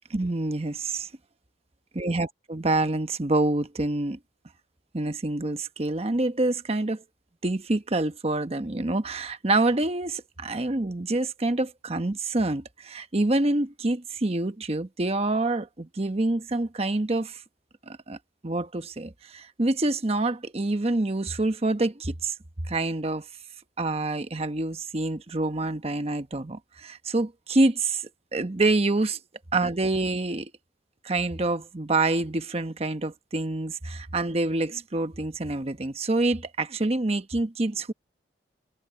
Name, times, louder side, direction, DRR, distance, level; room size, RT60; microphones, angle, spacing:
voice 1, 0.1-1.1 1.9-4.2 4.9-7.0 7.4-17.4 17.9-18.2 18.4-22.3 22.7-23.2 23.8-29.2 29.5-30.5 31.0-37.9, right 2 dB, 35° right, 1.0 m, -27 dB
head